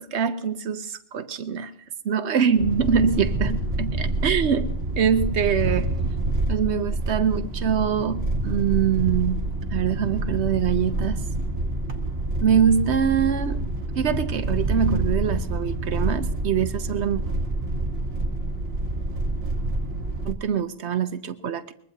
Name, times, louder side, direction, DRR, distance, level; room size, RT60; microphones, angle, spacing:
voice 1, 0.0-1.7 2.0-4.7 5.0-5.9 6.5-9.4 9.7-11.2 12.4-13.6 14.0-17.2 20.3-21.7, right 7 dB, 85° right, 10 dB, 1.1 m, -24 dB
sound 1, 2.6-20.3, right 2 dB, 70° right, 1.5 m, -27 dB
23.0 x 21.0 x 2.8 m, 0.71 s
omnidirectional pair, 1.1 m